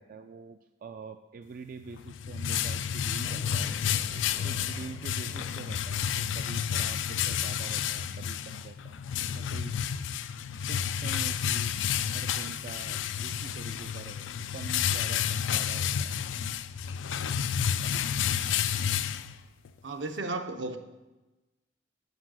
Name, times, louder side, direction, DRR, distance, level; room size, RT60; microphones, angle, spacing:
voice 1, 0.0-3.7 4.4-9.8 10.6-14.3 14.5-16.2 17.8-18.1, right 5 dB, 50° right, 8 dB, 0.3 m, -45 dB
sound 1, 1.8-19.7, left 8 dB, 90° left, 0.4 m, -31 dB
sound 2, 3.2-8.8 9.3-9.4 13.2-14.3, left 1 dB, 25° left, 0.5 m, -49 dB
voice 2, 19.8-20.8, right 3 dB, 75° right, 7 dB, 0.8 m, -34 dB
8.1 x 4.8 x 7.4 m, 1.1 s
head